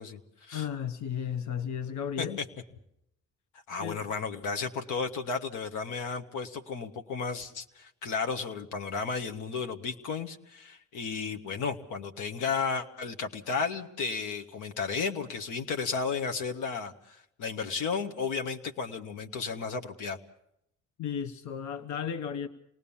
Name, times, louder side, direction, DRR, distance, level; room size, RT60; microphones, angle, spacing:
voice 1, 0.0-0.7 2.2-2.4 3.7-20.2, left 5 dB, 90° left, 5 dB, 1.5 m, -33 dB
voice 2, 0.5-2.4 3.8-4.1 21.0-22.5, left 8 dB, 70° left, 9 dB, 1.2 m, -34 dB
27.5 x 18.5 x 7.2 m, 0.77 s
cardioid pair, 90°, 30 cm